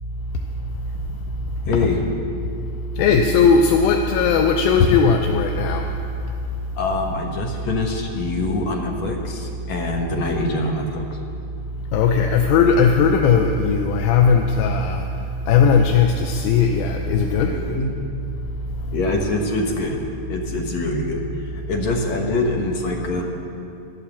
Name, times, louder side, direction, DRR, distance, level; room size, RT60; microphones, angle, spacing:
voice 1, 1.7-2.0 6.8-11.0 17.5-17.9 18.9-23.2, left 2 dB, 60° left, 1 dB, 2.3 m, -24 dB
voice 2, 3.0-6.0 6.2-6.3 11.9-17.6 18.6-18.9, left 5 dB, 85° left, 3 dB, 2.6 m, -18 dB
14.0 x 11.5 x 7.2 m, 2.6 s
omnidirectional pair, 4.1 m